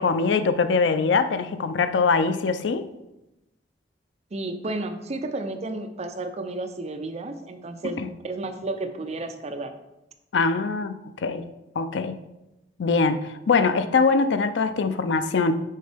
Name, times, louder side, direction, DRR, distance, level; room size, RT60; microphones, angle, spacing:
voice 1, 0.0-2.9 8.0-8.1 10.3-10.9 11.2-11.4 11.8-12.2 12.8-15.5, left 4 dB, 75° left, 11 dB, 0.4 m, -22 dB
voice 2, 4.3-9.7, right 2 dB, 35° right, 7 dB, 0.5 m, -32 dB
6.5 x 4.4 x 3.4 m, 0.93 s
head